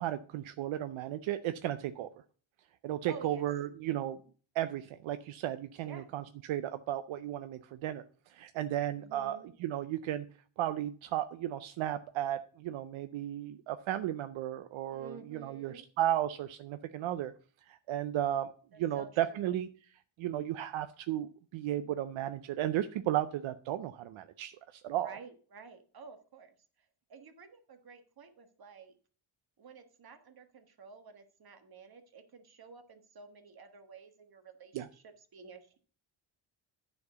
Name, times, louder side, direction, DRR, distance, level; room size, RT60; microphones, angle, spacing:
voice 1, 0.0-2.1 2.8-4.2 4.5-10.3 10.6-17.3 17.7-18.5 18.8-19.7 20.2-25.1 34.7-34.9, right 12 dB, 80° right, 11 dB, 0.6 m, -34 dB
voice 2, 3.1-3.4 5.8-6.1 8.9-9.5 14.9-15.8 18.7-19.5 25.0-28.9 29.6-35.8, right 5 dB, 50° right, 7 dB, 1.5 m, -52 dB
9.7 x 4.4 x 6.8 m, 0.43 s
cardioid pair, 110°, 47 cm